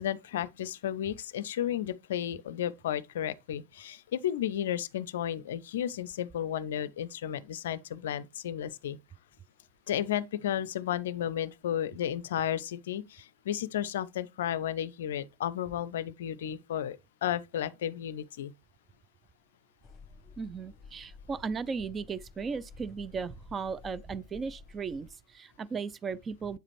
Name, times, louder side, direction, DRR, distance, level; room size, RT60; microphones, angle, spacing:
voice 1, 0.0-9.0 9.9-18.5, left 10 dB, 60° left, 0.4 m, -33 dB
sound 1, 19.8-25.1, left 4 dB, 15° left, 1.6 m, -52 dB
voice 2, 20.4-26.6, right 5 dB, 20° right, 0.3 m, -36 dB
7.8 x 4.8 x 3.1 m
figure-of-eight pair, 90°, 0 cm